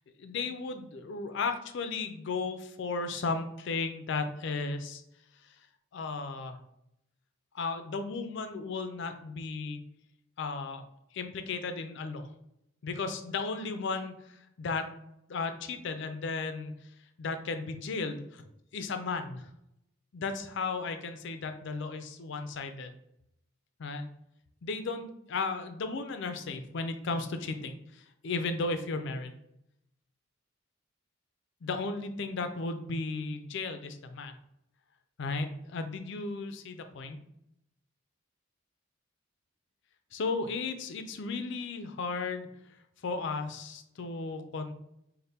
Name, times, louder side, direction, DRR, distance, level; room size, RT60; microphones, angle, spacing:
voice 1, 0.2-5.0 5.5-5.6 5.9-6.6 7.5-9.9 10.4-10.8 11.1-12.3 12.8-14.9 15.3-16.9 17.2-18.5 18.7-19.5 20.1-22.9 23.8-24.1 24.6-29.4 31.6-34.3 35.2-37.2 40.1-42.5 43.0-44.7, left 4 dB, 55° left, 8 dB, 0.4 m, -35 dB
3.4 x 2.1 x 4.1 m, 0.81 s
head